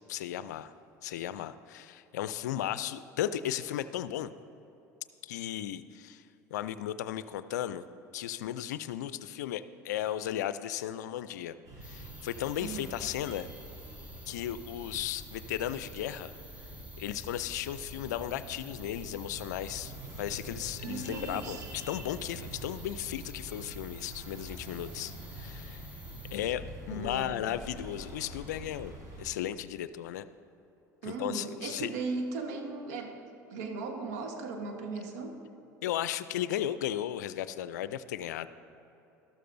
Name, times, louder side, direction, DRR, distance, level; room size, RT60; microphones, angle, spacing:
voice 1, 0.1-0.7 1.0-4.3 5.2-6.2 6.5-7.9 8.1-11.5 11.8-13.5 14.3-16.3 17.0-25.9 26.3-30.3 31.0-31.9 35.8-38.5, left 11 dB, 80° left, 14 dB, 0.4 m, -35 dB
sound 1, 11.6-29.3, right 1 dB, 40° right, 2.5 m, -45 dB
sound 2, 11.8-26.4, equal, 15° right, 1.5 m, -52 dB
voice 2, 12.6-12.9 20.8-21.6 26.9-27.4 31.0-33.2 33.5-35.4, right 3 dB, 75° right, 3 dB, 1.3 m, -37 dB
13.0 x 12.5 x 2.6 m, 3.0 s
hypercardioid pair, 75°, 9 cm